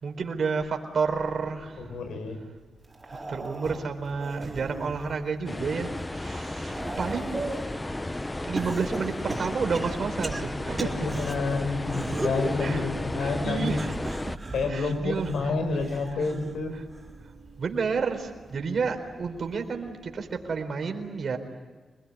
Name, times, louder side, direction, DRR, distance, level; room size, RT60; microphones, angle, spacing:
voice 1, 0.0-2.0 3.1-7.5 8.4-11.1 12.6-12.8 13.2-14.4 14.7-15.3 16.2-16.3 17.6-21.4, right 5 dB, 60° right, 5 dB, 4.3 m, -31 dB
voice 2, 1.8-2.4 10.8-13.8 14.5-16.7, left 3 dB, 90° left, 7 dB, 5.1 m, -29 dB
sound 1, 2.6-20.7, right 2 dB, 40° right, 4.5 m, -48 dB
sound 2, 2.9-5.2 5.7-7.7 8.6-11.3 11.8-12.5 13.7-16.6 16.9-17.3 18.5-18.6, right 2 dB, 20° right, 4.0 m, -37 dB
sound 3, 5.5-14.4, left 2 dB, 15° left, 0.7 m, -34 dB
27.5 x 21.0 x 9.9 m, 1.3 s
cardioid pair, 85°, 0 cm